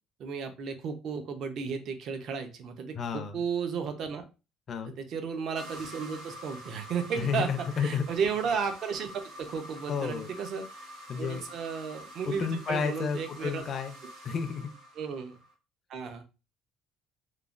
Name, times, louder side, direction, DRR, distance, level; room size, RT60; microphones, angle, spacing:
voice 1, 0.2-4.2 4.8-9.1 9.4-13.6 15.0-15.4 15.9-16.2, right 6 dB, 50° right, 7 dB, 0.5 m, -34 dB
voice 2, 2.9-3.4 4.7-4.9 7.2-8.0 9.9-10.3 11.1-11.4 12.3-13.9 14.2-14.7, left 6 dB, 35° left, 7 dB, 0.4 m, -31 dB
sound 1, 5.6-15.5, equal, 90° right, 1.1 m, -47 dB
3.1 x 2.1 x 2.4 m, 0.30 s
cardioid pair, 160°, 0 cm